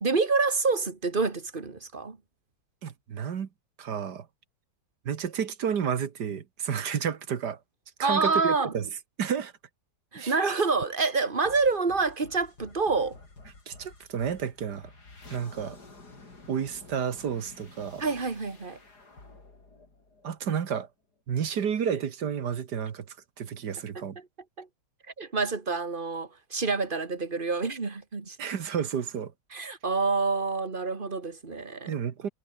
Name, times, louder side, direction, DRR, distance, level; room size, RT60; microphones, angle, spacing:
voice 1, 0.0-2.2 8.0-8.7 10.1-13.2 18.0-18.8 23.9-24.1 24.6-24.7 25.2-28.4 29.5-31.9, right 4 dB, 25° right, 2.1 m, -27 dB
voice 2, 2.8-3.5 3.8-4.3 5.1-7.6 8.0-8.9 9.2-9.5 10.2-10.3 13.7-14.9 15.3-15.8 16.5-18.1 20.2-20.9 21.3-24.2 28.4-29.3 31.9-32.3, right 7 dB, 60° right, 1.9 m, -31 dB
sound 1, 11.4-20.8, left 3 dB, 55° left, 5.3 m, -51 dB
omnidirectional pair, 2.0 m